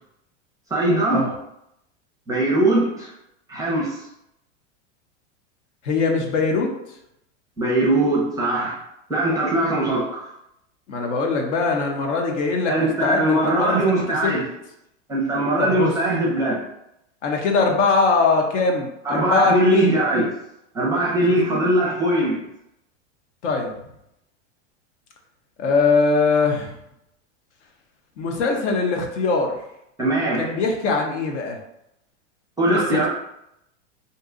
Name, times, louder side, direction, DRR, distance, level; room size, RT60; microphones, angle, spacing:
voice 1, 0.7-1.4 2.3-3.1 3.5-4.0 7.6-8.8 9.1-10.3 12.7-14.5 15.1-16.6 19.0-20.3 20.7-22.4 30.0-30.5 32.6-33.1, right 1 dB, 10° right, -4 dB, 0.5 m, -21 dB
voice 2, 5.8-6.7 10.9-14.3 15.6-15.9 17.2-20.0 23.4-23.7 25.6-26.7 28.2-29.6 30.4-31.6 32.7-33.1, left 4 dB, 70° left, 2 dB, 0.8 m, -22 dB
2.7 x 2.2 x 3.7 m, 0.81 s
supercardioid pair, 140°, 36 cm